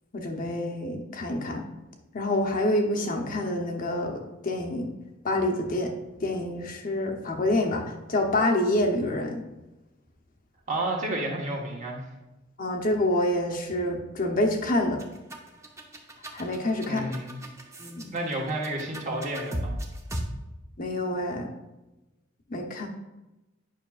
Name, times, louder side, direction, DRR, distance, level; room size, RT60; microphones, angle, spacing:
voice 1, 0.1-1.6 2.1-4.2 4.4-4.9 5.2-5.9 6.2-7.8 8.1-9.4 12.6-15.0 16.3-17.0 17.8-18.1 20.8-21.5 22.5-22.9, left 1 dB, 45° left, 3 dB, 0.8 m, -27 dB
voice 2, 10.7-12.1 16.9-17.4 18.1-19.7, right 1 dB, 40° right, -1 dB, 1.3 m, -31 dB
sound 1, 14.7-20.2, right 1 dB, 15° right, 0.8 m, -37 dB
9.2 x 5.8 x 2.4 m, 1.0 s
head